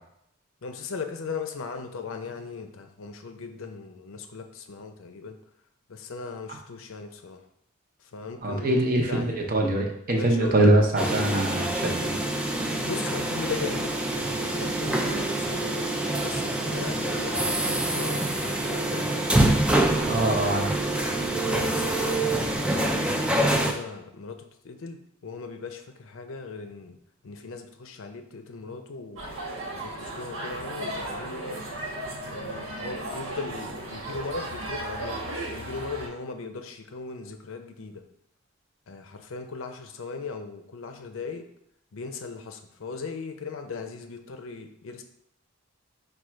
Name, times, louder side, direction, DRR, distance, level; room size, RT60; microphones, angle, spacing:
voice 1, 0.6-5.4 5.9-7.4 8.1-9.4 10.1-11.5 12.8-15.9 16.2-19.3 21.4-27.0 27.2-29.2 29.7-31.6 32.3-35.2 35.5-38.0 38.9-41.5 41.9-45.0, left 4 dB, 80° left, 6 dB, 0.6 m, -38 dB
voice 2, 8.4-12.2 20.1-20.8, right 1 dB, 45° right, 2 dB, 0.7 m, -23 dB
sound 1, 11.0-23.7, right 1 dB, 5° right, 0.3 m, -26 dB
sound 2, 29.2-36.1, right 1 dB, 75° right, 1.3 m, -35 dB
4.9 x 2.3 x 4.4 m, 0.78 s
head